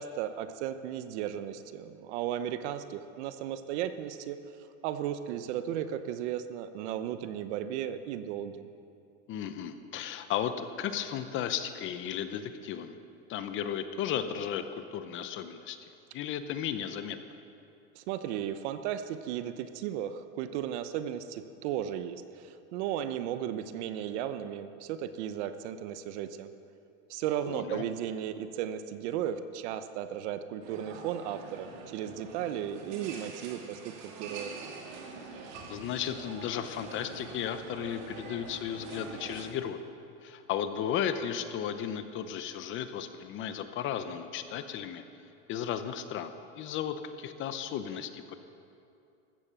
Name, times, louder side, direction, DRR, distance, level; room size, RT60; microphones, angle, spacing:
voice 1, 0.0-4.4 4.8-8.7 17.9-26.5 27.1-34.5, right 10 dB, 55° right, 11 dB, 1.0 m, -35 dB
voice 2, 9.3-13.0 13.3-15.8 16.1-17.2 27.5-27.8 35.7-39.8 40.2-45.0 45.5-48.3, left 9 dB, 30° left, 10 dB, 0.8 m, -35 dB
sound 1, 30.6-39.4, right 4 dB, 40° right, 2.5 m, -45 dB
15.0 x 13.5 x 6.8 m, 2.6 s
supercardioid pair, 150°, 40 cm